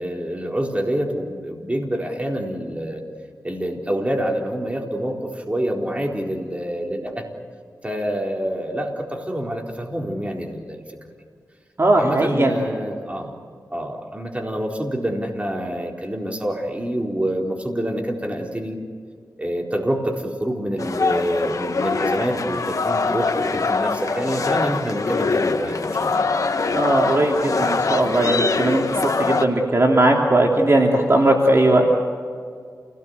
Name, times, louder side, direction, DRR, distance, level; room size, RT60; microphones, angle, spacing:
voice 1, 0.0-3.0 3.4-7.3 7.8-10.8 12.0-13.4 13.7-18.8 19.4-26.3, equal, 20° right, 1 dB, 4.2 m, -26 dB
voice 2, 11.8-12.6 26.7-31.9, right 1 dB, 40° right, 0 dB, 3.0 m, -18 dB
sound 1, 20.8-29.5, left 4 dB, 60° left, 1.7 m, -23 dB
29.0 x 18.0 x 8.1 m, 2.1 s
cardioid pair, 65°, 6 cm